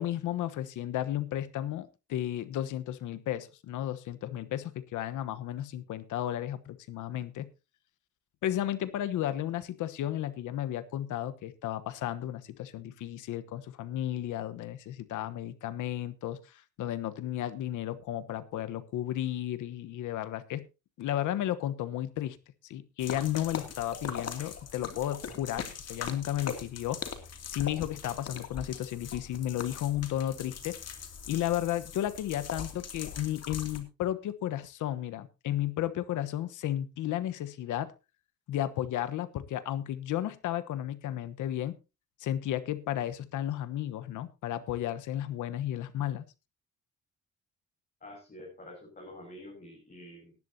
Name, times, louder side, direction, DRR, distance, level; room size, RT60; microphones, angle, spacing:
voice 1, 0.0-7.5 8.4-20.6 21.0-22.4 22.6-27.0 27.5-30.8 31.3-37.9 38.5-41.8 42.2-46.2, left 12 dB, 85° left, 13 dB, 1.1 m, -33 dB
sound 1, 23.0-33.8, left 7 dB, 55° left, 2.6 m, -41 dB
voice 2, 48.0-50.4, left 1 dB, 30° left, -1 dB, 6.2 m, -47 dB
18.5 x 11.0 x 2.8 m, 0.28 s
cardioid pair, 90°, 30 cm